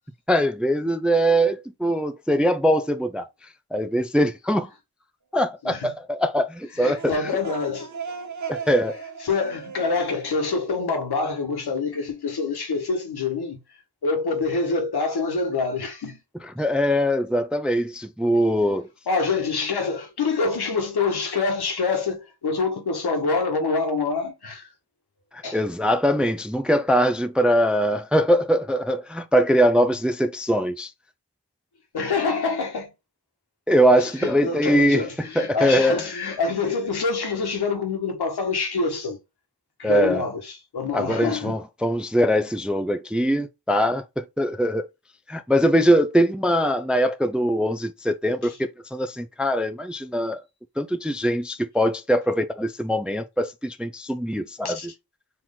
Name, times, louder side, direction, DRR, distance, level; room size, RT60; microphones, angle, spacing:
voice 1, 0.3-3.3 3.7-4.7 5.3-7.1 8.5-9.0 16.6-18.9 25.3-30.9 33.7-35.0 35.4-36.0 39.8-40.2 40.9-44.9 45.3-50.4 50.8-54.8, equal, ahead, 0.4 m, -22 dB
voice 2, 6.7-8.0 8.6-8.7 9.2-16.2 19.1-24.7 25.4-25.6 31.9-32.9 33.9-39.2 39.8-41.6 48.4-48.6 54.6-54.9, left 4 dB, 65° left, 1.5 m, -26 dB
sound 1, 6.7-11.5, right 6 dB, 45° right, 1.1 m, -38 dB
4.5 x 3.0 x 3.7 m
cardioid pair, 60°, 41 cm